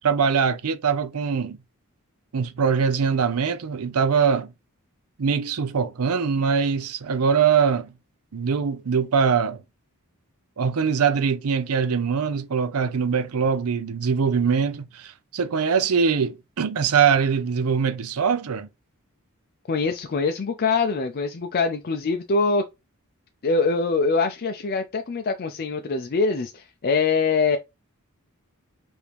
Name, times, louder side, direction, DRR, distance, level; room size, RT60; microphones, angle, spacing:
voice 1, 0.0-1.6 2.3-4.5 5.2-7.9 8.3-9.6 10.6-18.7, right 6 dB, 75° right, 0.5 m, -22 dB
voice 2, 19.7-22.6 23.4-27.6, left 4 dB, 45° left, 0.5 m, -23 dB
4.8 x 2.7 x 3.4 m
head